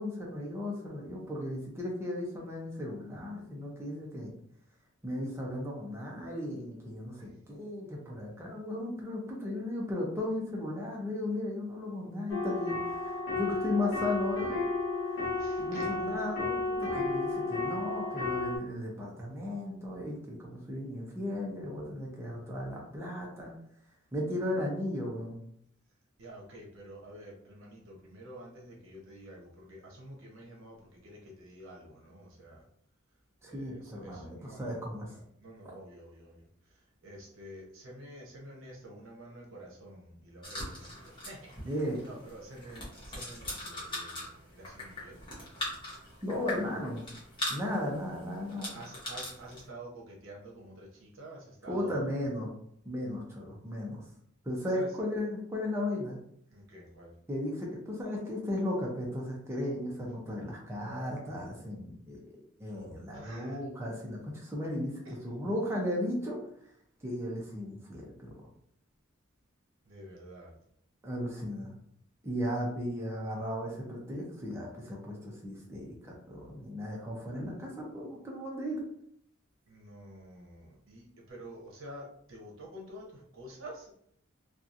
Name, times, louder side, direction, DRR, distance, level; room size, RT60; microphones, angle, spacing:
voice 1, 0.0-4.3 5.0-12.8 13.0-14.5 15.6-23.5 24.1-25.4 33.4-35.1 41.6-42.0 46.2-47.0 47.5-48.8 51.6-52.5 52.9-54.0 54.4-56.2 57.3-62.2 62.6-66.4 67.0-68.5 71.0-71.7 72.2-78.8, left 1 dB, 15° right, -3 dB, 0.5 m, -35 dB
sound 1, 12.3-18.6, left 3 dB, 65° left, 0.9 m, -32 dB
voice 2, 15.4-16.0 26.2-32.6 33.5-34.8 35.1-36.5 37.0-41.5 42.0-45.2 48.7-52.2 54.7-54.9 56.5-57.1 63.1-63.6 69.9-70.5 79.7-83.9, right 1 dB, 70° right, -2 dB, 0.8 m, -49 dB
sound 2, 40.4-49.7, left 1 dB, 25° left, 1.0 m, -41 dB
2.8 x 2.3 x 2.5 m, 0.67 s
head